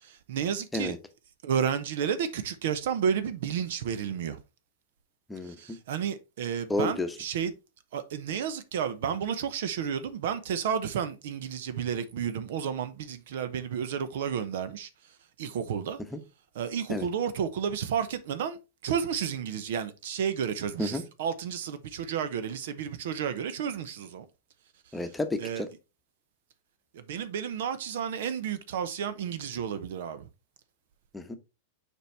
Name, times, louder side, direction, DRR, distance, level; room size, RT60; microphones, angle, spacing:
voice 1, 0.0-1.0 1.4-4.4 5.4-7.5 7.9-14.9 15.4-16.0 16.5-18.6 18.8-24.2 25.4-25.6 26.9-30.3, right 8 dB, 60° right, 0.8 m, -31 dB
voice 2, 5.3-5.8 6.7-7.1 16.1-16.2 16.9-17.1 20.8-21.0 24.9-25.7 31.1-31.4, left 2 dB, 10° left, 1.0 m, -31 dB
6.8 x 4.6 x 3.3 m
figure-of-eight pair, 95°, 0 cm